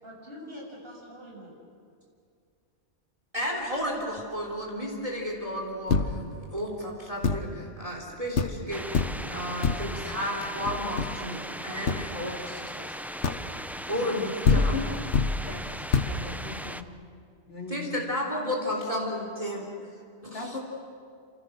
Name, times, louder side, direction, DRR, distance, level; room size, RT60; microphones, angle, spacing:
voice 1, 0.0-1.5, equal, 55° right, -2 dB, 7.7 m, -45 dB
voice 2, 3.3-13.0 13.9-14.7 17.7-19.7 20.2-20.6, equal, 30° right, -1 dB, 3.5 m, -33 dB
sound 1, 5.9-6.4 7.2-7.6 8.0-8.1 8.4-8.7 8.9-9.3 9.6-10.0 10.6-11.3 11.9-12.1 13.2-13.6 14.2-14.3 14.4-15.5 15.9-16.2, left 4 dB, 85° left, 1.6 m, -26 dB
sound 2, 8.7-16.8, equal, ahead, 0.4 m, -38 dB
voice 3, 14.5-14.8 15.4-15.6 15.9-16.8 17.5-17.9 20.3-20.6, left 4 dB, 60° left, -1 dB, 3.7 m, -37 dB
29.0 x 27.5 x 6.5 m, 2.3 s
omnidirectional pair, 1.2 m